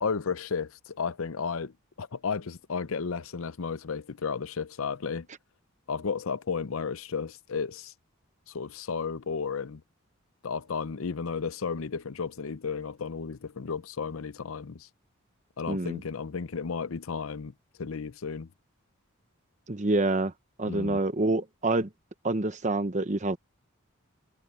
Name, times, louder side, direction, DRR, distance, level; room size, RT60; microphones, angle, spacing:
voice 1, 0.0-1.7 2.0-5.3 5.9-7.9 8.5-9.8 10.4-14.9 15.6-17.5 17.8-18.5 20.7-21.0, left 5 dB, 75° left, 0.6 m, -33 dB
voice 2, 15.7-16.0 19.7-20.3 20.6-21.9 22.2-23.4, right 2 dB, 35° right, 1.0 m, -27 dB
head